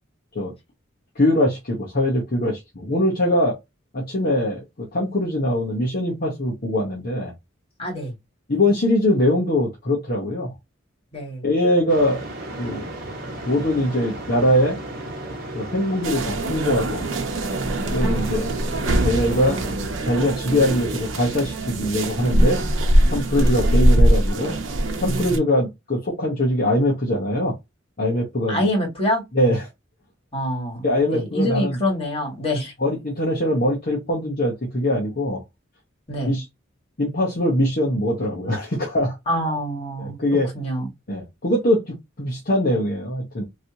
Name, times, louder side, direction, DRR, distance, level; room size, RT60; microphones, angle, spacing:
voice 1, 1.1-3.6 3.9-7.3 8.5-10.5 11.4-12.2 12.6-12.8 13.4-14.8 15.5-17.1 17.8-18.5 19.0-19.6 20.0-22.6 23.1-24.6 25.0-27.5 28.0-28.7 29.3-29.7 30.8-31.8 32.8-35.4 36.3-36.4 37.0-39.2 40.2-40.5 41.1-43.4, left 1 dB, 50° left, 1.0 m, -22 dB
voice 2, 7.8-8.1 11.1-11.5 18.0-18.2 23.4-23.7 25.0-25.4 28.5-29.2 30.3-30.9 31.1-32.7 36.1-36.3 39.3-40.2 40.5-40.9, equal, 30° left, 1.8 m, -26 dB
sound 1, 11.9-19.7, right 1 dB, 55° right, 1.3 m, -35 dB
sound 2, 16.0-25.4, right 1 dB, 80° right, 0.8 m, -21 dB
3.0 x 2.7 x 2.8 m
head